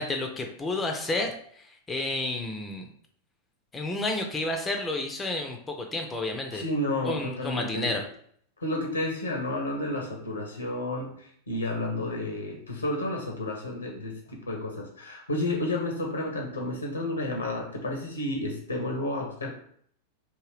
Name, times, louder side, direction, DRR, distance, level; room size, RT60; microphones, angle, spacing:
voice 1, 0.0-2.9 3.7-6.6 7.1-8.0, left 2 dB, 15° left, 3 dB, 0.4 m, -31 dB
voice 2, 6.5-8.0 8.6-19.5, left 1 dB, 80° left, 1 dB, 0.7 m, -31 dB
3.6 x 2.7 x 3.1 m, 0.62 s
figure-of-eight pair, 90°, 0 cm